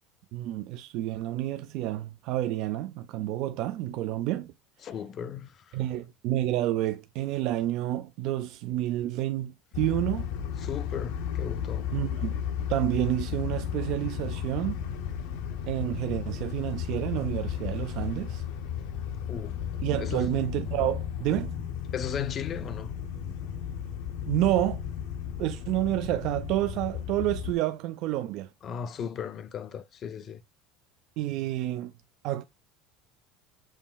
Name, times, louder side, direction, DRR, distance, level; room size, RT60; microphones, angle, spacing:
voice 1, 0.3-4.5 5.7-10.3 11.9-12.4 12.7-14.8 15.7-18.4 19.8-21.6 24.3-24.8 25.4-28.5 31.2-31.9 32.2-32.4, right 14 dB, 50° right, 0.4 m, -29 dB
voice 2, 4.8-5.8 10.6-11.9 19.3-19.6 20.0-20.3 21.9-22.9 28.6-30.4, left 8 dB, 30° left, 0.4 m, -36 dB
sound 1, 9.7-27.6, left 9 dB, 65° left, 0.6 m, -34 dB
7.2 x 3.0 x 2.2 m
cardioid pair, 165°, 0 cm